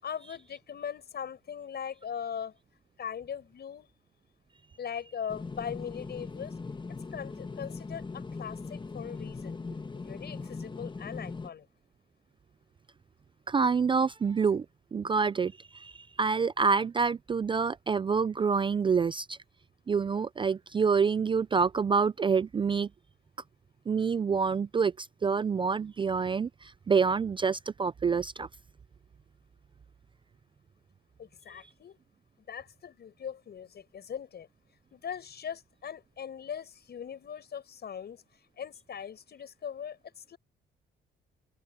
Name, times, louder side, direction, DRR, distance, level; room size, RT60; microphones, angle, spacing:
voice 1, 0.0-2.5 3.0-3.9 4.8-6.6 7.1-9.6 9.9-11.7 31.2-32.0 32.5-34.5 34.9-38.2 38.6-40.4, left 8 dB, 55° left, 7.2 m, -40 dB
sound 1, 5.3-11.5, left 4 dB, 25° left, 1.4 m, -40 dB
voice 2, 13.5-14.7 14.9-19.4 19.9-22.9 23.9-28.5, right 5 dB, 25° right, 0.4 m, -27 dB
open air
cardioid pair, 90°, 20 cm